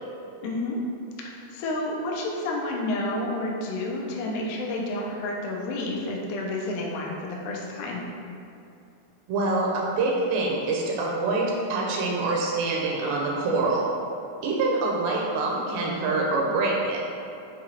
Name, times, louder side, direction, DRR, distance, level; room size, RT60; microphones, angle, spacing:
voice 1, 0.4-0.8 1.3-8.1, left 2 dB, 80° left, -2 dB, 1.9 m, -30 dB
voice 2, 9.3-13.9 14.4-17.0, right 3 dB, 85° right, -2 dB, 2.3 m, -25 dB
6.9 x 2.6 x 2.7 m, 2.8 s
omnidirectional pair, 4.1 m